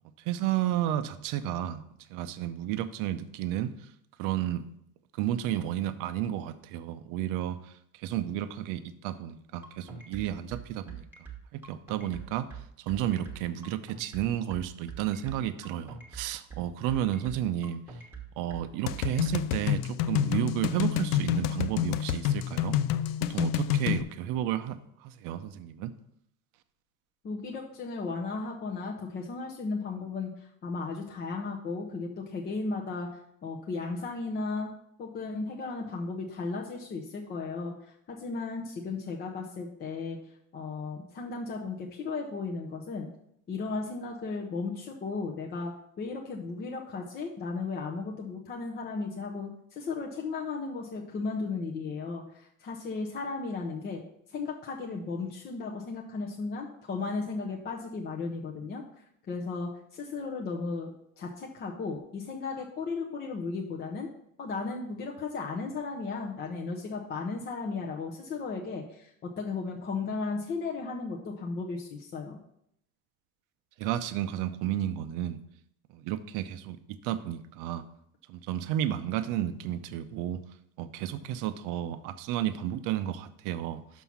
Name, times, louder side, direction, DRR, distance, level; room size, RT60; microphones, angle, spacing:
voice 1, 0.3-1.8 2.1-3.7 4.2-4.6 5.2-7.7 8.0-11.1 11.5-12.5 12.8-17.8 18.4-22.8 23.3-25.9 73.8-75.4 75.9-76.8 77.0-77.8 78.3-80.4 80.8-83.8, right 11 dB, 50° right, 11 dB, 0.6 m, -32 dB
sound 1, 9.6-19.4, right 6 dB, 5° right, 1.2 m, -43 dB
sound 2, 18.9-24.0, left 11 dB, 65° left, 0.5 m, -28 dB
voice 2, 27.2-34.7 35.0-40.2 40.5-43.1 43.5-45.7 46.0-54.0 54.3-58.8 59.3-60.9 61.2-64.1 64.4-72.4, left 4 dB, 25° left, 0 dB, 0.6 m, -35 dB
6.1 x 5.6 x 5.8 m, 0.74 s
supercardioid pair, 140°, 42 cm